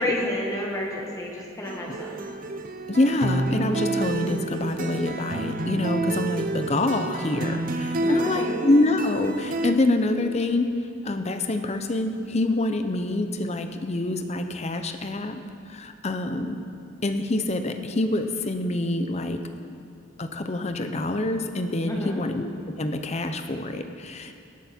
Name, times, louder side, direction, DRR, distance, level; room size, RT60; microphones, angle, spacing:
voice 1, 0.0-2.3 8.0-8.6 21.8-22.3, left 1 dB, 15° left, -3 dB, 1.6 m, -30 dB
sound 1, 1.7-9.7, right 2 dB, 45° right, 0.6 m, -29 dB
voice 2, 2.9-10.7 11.0-15.4 15.7-16.6 17.0-19.4 20.2-22.5 22.8-24.3, left 2 dB, 30° left, 7 dB, 0.6 m, -26 dB
18.0 x 7.7 x 4.4 m, 2.5 s
head